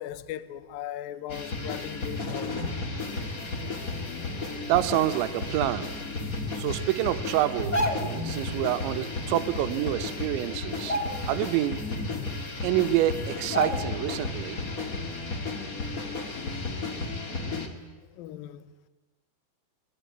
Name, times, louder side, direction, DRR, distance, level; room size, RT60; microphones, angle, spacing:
voice 1, 0.0-2.6 18.1-18.7, left 11 dB, 75° left, 2.2 m, -38 dB
sound 1, 1.3-17.7, left 3 dB, 30° left, 1.6 m, -33 dB
voice 2, 4.7-5.9 6.6-7.8 8.2-11.0 11.3-11.8 12.6-14.6, right 14 dB, 85° right, 3.4 m, -27 dB
sound 2, 7.5-8.3 9.7-9.8 10.1-10.4 10.8-11.6 12.0-12.1 12.9-13.0 13.5-14.1 14.5-14.7, equal, 55° left, 0.4 m, -30 dB
25.0 x 20.5 x 9.3 m
omnidirectional pair, 5.2 m